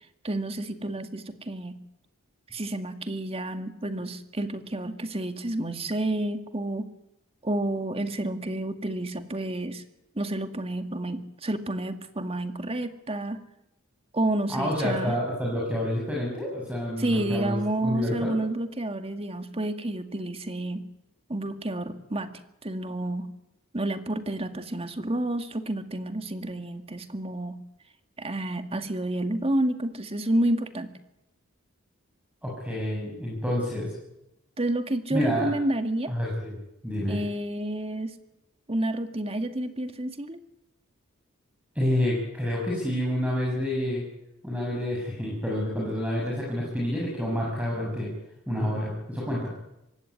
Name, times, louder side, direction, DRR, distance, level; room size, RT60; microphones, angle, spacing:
voice 1, 0.2-1.8 2.5-6.9 7.4-9.8 10.2-13.4 14.1-15.2 17.0-20.8 21.3-23.3 23.7-27.6 28.2-30.9 34.6-36.1 37.1-38.1 38.7-40.4, right 1 dB, 30° right, 8 dB, 2.1 m, -30 dB
voice 2, 14.5-17.6 17.8-18.3 32.4-33.9 35.1-35.5 36.1-36.6 36.8-37.2 41.8-44.0 44.4-48.1 48.5-49.5, left 1 dB, 5° right, -3 dB, 6.9 m, -28 dB
25.0 x 19.0 x 9.7 m, 0.87 s
head